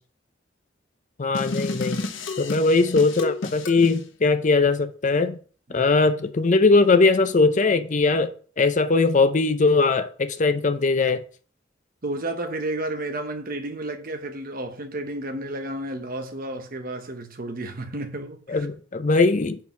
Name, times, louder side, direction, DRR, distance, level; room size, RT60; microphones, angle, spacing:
voice 1, 1.2-2.0 2.4-5.4 5.7-8.3 8.6-11.2 18.5-19.6, left 3 dB, 40° left, 0.6 m, -20 dB
sound 1, 1.3-4.0, left 3 dB, 85° left, 0.9 m, -31 dB
voice 2, 12.0-18.7, right 1 dB, 50° right, 0.9 m, -32 dB
5.5 x 4.5 x 5.8 m
head